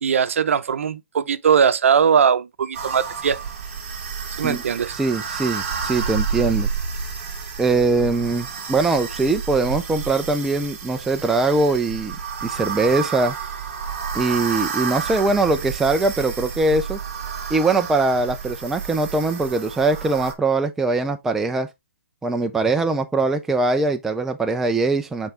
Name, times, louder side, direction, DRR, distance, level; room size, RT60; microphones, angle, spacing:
voice 1, 0.0-3.4 4.4-5.0, right 7 dB, 70° right, 0.8 m, -20 dB
sound 1, 2.7-20.3, right 6 dB, 35° right, 2.0 m, -30 dB
voice 2, 4.9-6.7 7.6-12.2 12.4-13.3 14.1-17.0 17.5-21.7 22.2-25.3, right 3 dB, 5° right, 0.3 m, -21 dB
8.8 x 3.5 x 3.3 m
hypercardioid pair, 165°, 7 cm